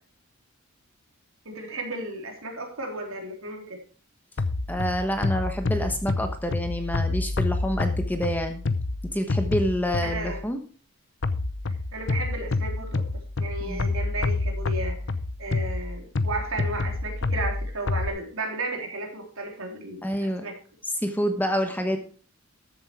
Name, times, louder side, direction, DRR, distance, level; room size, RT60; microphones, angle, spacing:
voice 1, 1.5-3.8 10.0-10.4 11.7-13.0 13.4-15.0 15.4-20.5, right 2 dB, 70° right, 2 dB, 3.6 m, -34 dB
sound 1, 4.4-10.4 11.2-18.1, left 3 dB, 55° left, 0.7 m, -28 dB
voice 2, 4.7-8.6 9.1-10.6 13.6-13.9 20.0-20.4 21.0-22.0, equal, 10° left, 6 dB, 1.1 m, -27 dB
13.5 x 7.7 x 4.6 m, 0.38 s
head